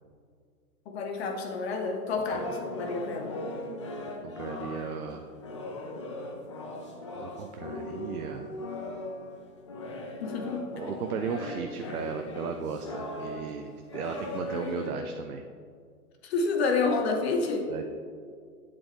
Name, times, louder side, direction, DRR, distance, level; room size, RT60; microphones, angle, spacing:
voice 1, 0.9-3.4 10.2-10.6 16.2-17.7, left 4 dB, 45° left, 3 dB, 1.0 m, -29 dB
sound 1, 2.3-15.0, left 2 dB, 20° left, 0.3 m, -38 dB
voice 2, 4.2-5.3 7.2-8.5 10.7-15.4 17.7-17.8, right 6 dB, 70° right, 6 dB, 0.7 m, -36 dB
7.9 x 7.4 x 3.3 m, 2.1 s
hypercardioid pair, 125°, 46 cm